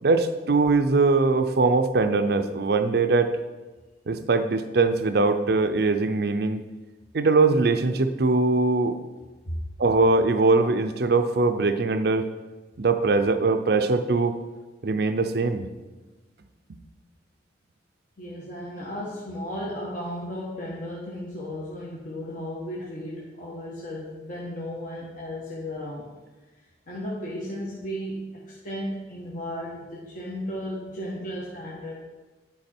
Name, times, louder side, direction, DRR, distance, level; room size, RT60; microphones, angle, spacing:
voice 1, 0.0-3.3 4.1-6.6 7.1-9.0 9.8-12.3 12.8-14.4 14.8-15.7, right 3 dB, 60° right, 9 dB, 0.5 m, -21 dB
voice 2, 18.2-26.1 26.9-32.0, equal, 45° left, -5 dB, 1.2 m, -35 dB
9.7 x 4.9 x 4.4 m, 1.2 s
head